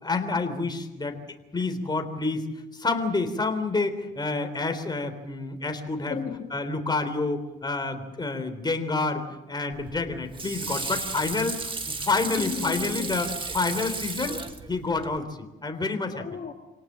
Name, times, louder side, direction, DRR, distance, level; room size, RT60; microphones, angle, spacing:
voice 1, 0.0-1.2 1.5-6.2 6.5-13.3 13.5-14.4 14.7-16.2, left 3 dB, 20° left, 6 dB, 3.5 m, -28 dB
voice 2, 6.1-6.6 12.2-13.2 16.1-16.5, left 7 dB, 45° left, 1 dB, 2.7 m, -34 dB
Water / Sink (filling or washing), 9.7-15.2, right 3 dB, 25° right, 2.0 m, -34 dB
26.5 x 18.5 x 7.6 m, 0.99 s
cardioid pair, 90°, 20 cm